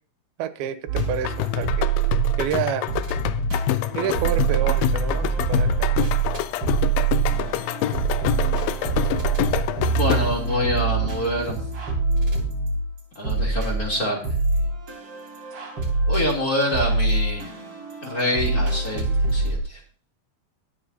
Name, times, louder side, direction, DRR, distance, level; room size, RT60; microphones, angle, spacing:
voice 1, 0.4-1.9 2.4-2.9 3.9-5.9 6.3-6.4, right 9 dB, 90° right, 11 dB, 2.8 m, -29 dB
sound 1, 0.9-2.6 2.9-19.6, right 5 dB, 40° right, 3.6 m, -25 dB
sound 2, 1.0-10.5, left 14 dB, 80° left, 2.3 m, -27 dB
voice 2, 9.9-11.6 13.1-14.2 16.1-17.5 18.0-19.8, left 1 dB, 25° left, -1 dB, 3.1 m, -26 dB
22.0 x 7.5 x 2.8 m, 0.41 s
omnidirectional pair, 4.4 m